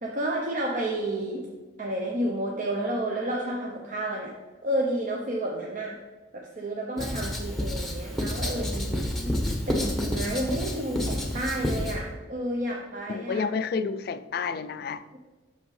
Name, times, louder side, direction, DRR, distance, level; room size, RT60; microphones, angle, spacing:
voice 1, 0.0-1.5 1.8-4.4 4.6-6.0 6.3-13.5 15.1-15.2, right 1 dB, 40° right, 0.7 m, -31 dB
Writing, 7.0-12.0, left 1 dB, ahead, 0.9 m, -29 dB
voice 2, 13.1-15.2, left 5 dB, 55° left, 0.3 m, -30 dB
7.8 x 6.2 x 3.2 m
head